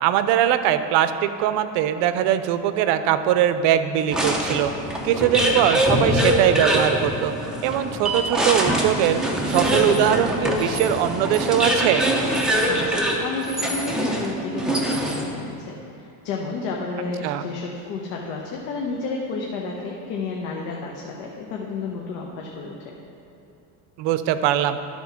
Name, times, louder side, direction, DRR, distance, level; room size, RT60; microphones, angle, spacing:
voice 1, 0.0-4.7 5.0-7.3 7.6-9.2 9.5-12.1 17.2-17.5 24.0-24.8, right 10 dB, 65° right, 11 dB, 0.6 m, -21 dB
sound 1, 4.1-15.4, equal, ahead, 0.7 m, -23 dB
voice 2, 12.7-23.0, left 3 dB, 85° left, -1 dB, 1.1 m, -31 dB
12.0 x 4.3 x 5.8 m, 2.9 s
cardioid pair, 145°, 46 cm